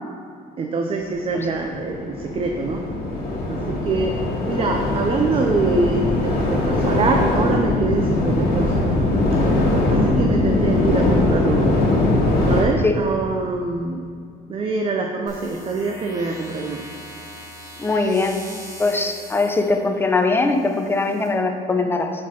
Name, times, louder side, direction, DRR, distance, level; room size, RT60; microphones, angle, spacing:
voice 1, 0.6-2.8 3.5-4.1 4.5-9.0 9.9-11.7 12.5-14.1 14.5-16.8, right 3 dB, 35° right, 3 dB, 0.5 m, -24 dB
sound 1, 1.1-12.6, left 2 dB, 70° left, 1.7 m, -21 dB
sound 2, 15.3-21.3, equal, 20° right, 1.7 m, -41 dB
voice 2, 17.8-18.4 18.8-22.1, left 3 dB, 15° left, 4 dB, 0.6 m, -21 dB
6.5 x 3.6 x 5.7 m, 2.2 s
cardioid pair, 110°, 17 cm